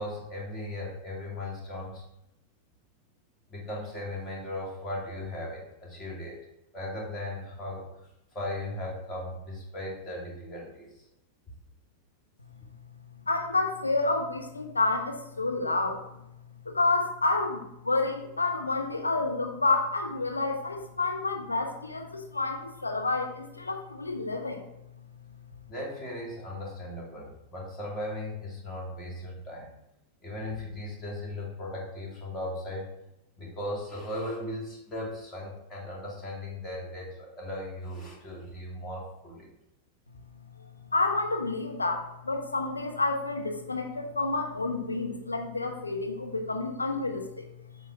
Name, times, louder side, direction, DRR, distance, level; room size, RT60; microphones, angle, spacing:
voice 1, 0.0-2.0 3.5-6.4 6.7-7.9 8.3-11.0 25.7-29.7 30.2-32.9 33.4-39.5, left 1 dB, 25° left, -3 dB, 2.4 m, -37 dB
voice 2, 13.3-16.0 16.7-24.6 40.9-47.5, left 3 dB, 80° left, 3 dB, 0.9 m, -29 dB
8.0 x 4.7 x 3.4 m, 0.86 s
figure-of-eight pair, 90°, 0 cm